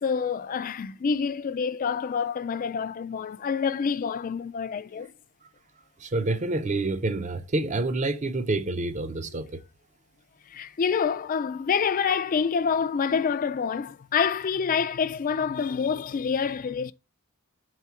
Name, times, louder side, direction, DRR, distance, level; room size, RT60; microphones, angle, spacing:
voice 1, 0.0-5.1 10.5-16.9, left 6 dB, 35° left, 0.3 m, -27 dB
voice 2, 6.0-9.6, right 2 dB, 30° right, 0.5 m, -28 dB
4.8 x 3.7 x 5.6 m
head